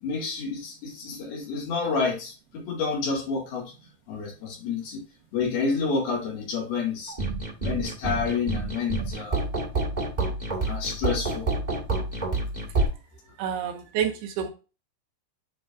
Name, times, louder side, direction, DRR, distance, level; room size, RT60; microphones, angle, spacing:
voice 1, 0.0-3.7 4.1-5.0 5.3-7.1 7.6-9.4 10.7-11.5, left 5 dB, 65° left, -1 dB, 3.8 m, -29 dB
sound 1, 7.1-12.8, right 3 dB, 30° right, 0.7 m, -28 dB
voice 2, 13.4-14.5, right 8 dB, 75° right, 5 dB, 2.6 m, -28 dB
10.0 x 4.7 x 2.6 m, 0.32 s
omnidirectional pair, 4.9 m